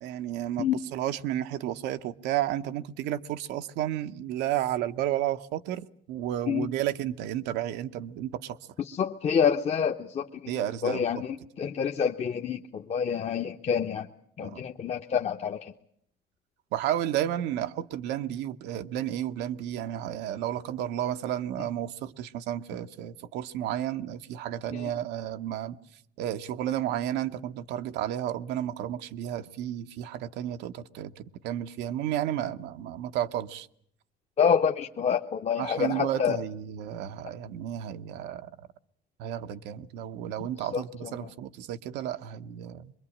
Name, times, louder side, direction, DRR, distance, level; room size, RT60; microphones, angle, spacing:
voice 1, 0.0-8.6 10.5-11.2 14.4-14.6 16.7-25.8 26.2-33.7 35.6-38.5 39.2-42.9, right 11 dB, 90° right, 1.0 m, -32 dB
voice 2, 8.9-14.1 14.4-15.7 24.7-24.9 34.4-36.4 40.7-41.3, left 7 dB, 40° left, 1.0 m, -28 dB
24.0 x 22.0 x 8.6 m
cardioid pair, 110°, 17 cm